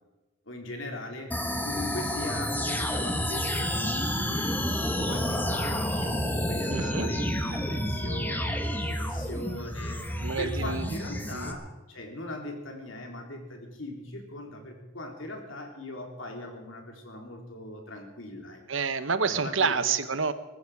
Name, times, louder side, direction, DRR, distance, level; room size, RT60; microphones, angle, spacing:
voice 1, 0.5-1.3 1.6-4.6 4.9-18.6 19.3-19.8, left 1 dB, 75° left, 3 dB, 3.5 m, -40 dB
sound 1, 1.3-11.5, equal, 10° left, 1.5 m, -30 dB
voice 2, 6.7-7.1 10.2-10.9 11.3-11.5 18.7-20.3, right 5 dB, 75° right, 13 dB, 1.1 m, -28 dB
19.0 x 15.0 x 4.9 m, 1.2 s
head